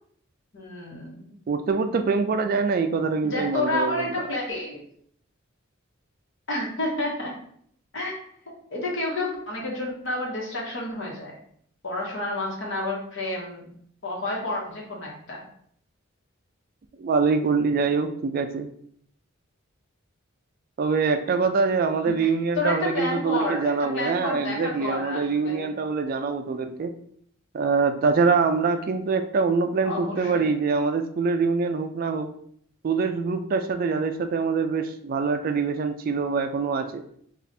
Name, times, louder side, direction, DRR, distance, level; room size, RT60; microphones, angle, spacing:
voice 1, 0.5-1.4 3.2-4.8 6.5-7.3 7.9-8.2 8.7-11.4 11.8-13.7 14.0-15.4 22.2-22.3 22.5-25.7 29.8-30.5, left 2 dB, 60° left, -2 dB, 1.2 m, -30 dB
voice 2, 1.5-4.2 17.0-18.7 20.8-26.9 27.5-32.3 32.8-37.0, right 4 dB, 45° right, 8 dB, 0.3 m, -24 dB
3.3 x 2.4 x 4.1 m, 0.65 s
head